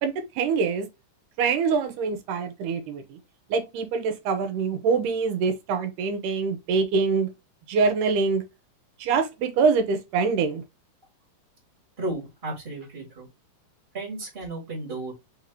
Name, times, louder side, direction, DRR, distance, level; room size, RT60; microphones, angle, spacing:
voice 1, 0.0-0.9 1.4-3.2 3.5-7.3 7.7-8.4 9.0-10.6, right 5 dB, 85° right, 2.4 m, -24 dB
voice 2, 12.0-13.3 13.9-15.1, right 2 dB, 25° right, 1.3 m, -33 dB
5.5 x 3.0 x 2.8 m
omnidirectional pair, 3.7 m